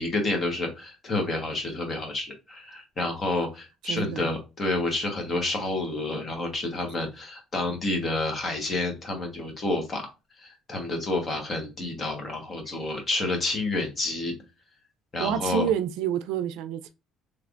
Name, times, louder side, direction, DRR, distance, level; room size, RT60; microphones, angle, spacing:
voice 1, 0.0-10.0 10.4-14.3 15.1-15.7, left 2 dB, 25° left, 1.1 m, -29 dB
voice 2, 3.9-4.3 15.2-16.9, right 8 dB, 85° right, 0.4 m, -28 dB
3.3 x 3.2 x 2.5 m
cardioid pair, 150°, 0 cm